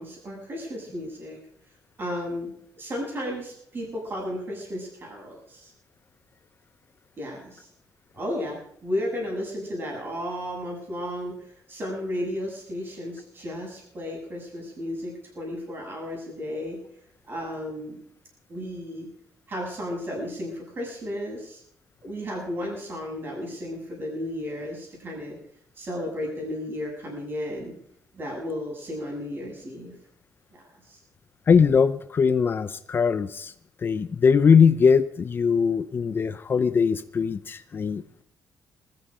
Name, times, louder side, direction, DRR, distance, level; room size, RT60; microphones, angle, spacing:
voice 1, 0.0-1.4 2.0-2.5 2.8-5.7 7.2-7.7 8.1-16.8 17.3-18.0 18.5-19.1 19.5-21.6 22.0-25.4 25.8-27.8 28.1-30.0 30.9-31.0, left 1 dB, 30° right, -2 dB, 7.3 m, -33 dB
voice 2, 31.5-33.5 33.8-38.0, left 6 dB, 30° left, 12 dB, 0.7 m, -21 dB
20.5 x 14.0 x 5.0 m, 0.67 s
cardioid pair, 170°, 7 cm